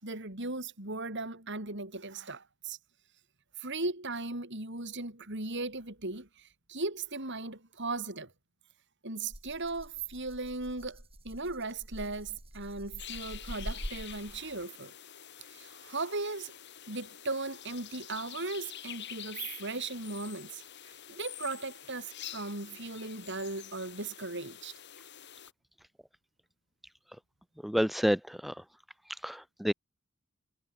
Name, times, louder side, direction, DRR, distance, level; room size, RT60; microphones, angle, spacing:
voice 1, 0.0-2.8 3.6-8.3 9.0-14.9 15.5-16.5 16.9-24.7, right 3 dB, 60° right, 6.3 m, -37 dB
Rattle (instrument), 9.3-14.6, equal, 30° right, 7.1 m, -45 dB
sound 1, 13.0-25.5, left 10 dB, 55° left, 3.7 m, -47 dB
voice 2, 27.6-28.5 29.2-29.7, equal, ahead, 0.5 m, -29 dB
head